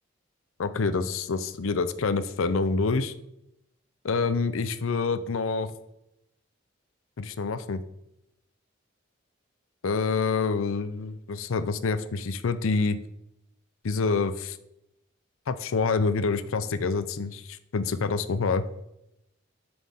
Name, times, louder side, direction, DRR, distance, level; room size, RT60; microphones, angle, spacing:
voice 1, 0.6-3.1 4.0-5.7 7.2-7.8 9.8-13.0 13.8-14.6 15.5-18.6, left 4 dB, 80° left, 13 dB, 0.5 m, -27 dB
7.4 x 6.2 x 3.6 m, 0.82 s
head